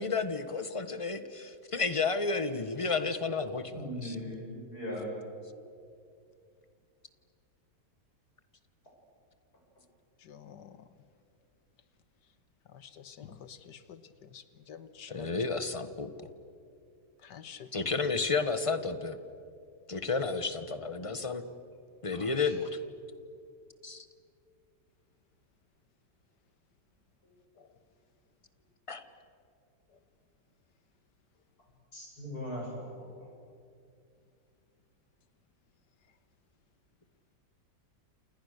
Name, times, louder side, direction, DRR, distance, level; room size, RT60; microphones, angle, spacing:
voice 1, 0.0-4.2 15.1-16.3 17.7-19.2 19.9-21.4 22.0-22.7 23.8-24.1 28.9-29.0, left 4 dB, 20° left, 10 dB, 1.1 m, -32 dB
voice 2, 3.7-5.1 22.1-22.6 31.9-33.3, equal, 60° left, -2 dB, 8.5 m, -40 dB
voice 3, 10.2-10.9 12.7-15.5 17.2-18.1 20.1-20.3 27.6-27.8 29.9-30.0, left 8 dB, 75° left, 12 dB, 1.8 m, -50 dB
29.0 x 28.5 x 6.7 m, 2.4 s
omnidirectional pair, 1.9 m